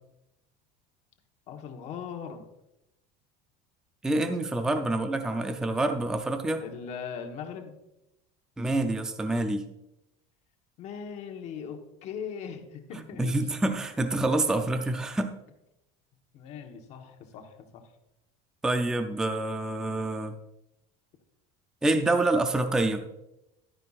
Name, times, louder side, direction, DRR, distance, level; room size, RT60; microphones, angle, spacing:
voice 1, 1.5-2.5 6.6-7.8 10.8-13.4 16.3-17.9, left 7 dB, 40° left, 4 dB, 1.1 m, -39 dB
voice 2, 4.0-6.6 8.6-9.7 13.2-15.3 18.6-20.4 21.8-23.1, right 2 dB, 5° right, 7 dB, 0.4 m, -27 dB
12.0 x 9.6 x 2.4 m, 0.87 s
cardioid pair, 175°, 18 cm